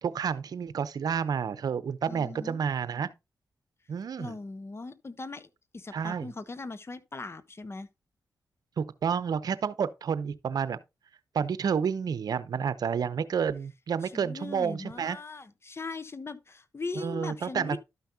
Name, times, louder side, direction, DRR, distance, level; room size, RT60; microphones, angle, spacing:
voice 1, 0.0-3.1 3.9-4.4 5.9-6.3 8.8-10.8 11.3-15.2 17.0-17.8, right 7 dB, 70° right, 0.7 m, -30 dB
voice 2, 2.1-2.6 4.2-7.9 14.0-17.8, left 3 dB, 40° left, 1.0 m, -39 dB
12.5 x 5.7 x 2.8 m
supercardioid pair, 50°, 7 cm